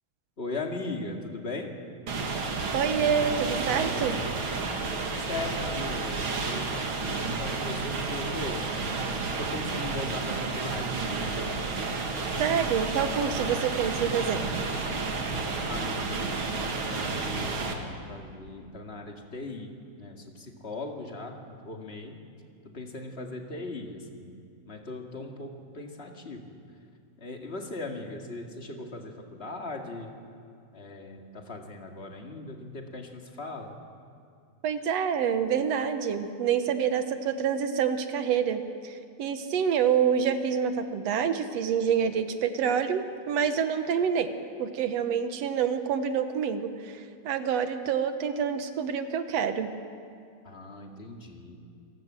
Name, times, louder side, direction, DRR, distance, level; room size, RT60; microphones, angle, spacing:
voice 1, 0.4-1.7 5.2-6.7 7.0-8.6 9.4-11.3 15.7-19.7 20.0-21.4 21.7-22.1 22.7-24.3 24.7-26.6 27.2-30.1 30.7-33.7 50.4-51.6, left 2 dB, 25° left, 2 dB, 2.0 m, -39 dB
sound 1, 2.1-17.7, right 3 dB, 45° right, 2.5 m, -31 dB
voice 2, 2.7-4.2 12.4-14.5 34.6-44.3 44.6-49.7, right 7 dB, 65° right, 9 dB, 2.1 m, -27 dB
27.5 x 18.5 x 7.5 m, 2.4 s
omnidirectional pair, 3.3 m